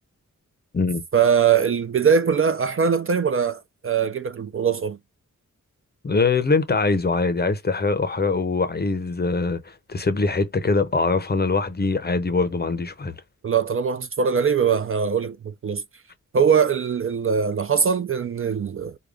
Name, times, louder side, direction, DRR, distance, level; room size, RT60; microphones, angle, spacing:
voice 1, 1.1-5.0 13.4-15.8 16.3-18.9, right 6 dB, 45° right, 0.4 m, -21 dB
voice 2, 6.0-13.2, left 3 dB, 30° left, 0.6 m, -23 dB
4.9 x 2.2 x 3.4 m
wide cardioid pair, 130°, 32 cm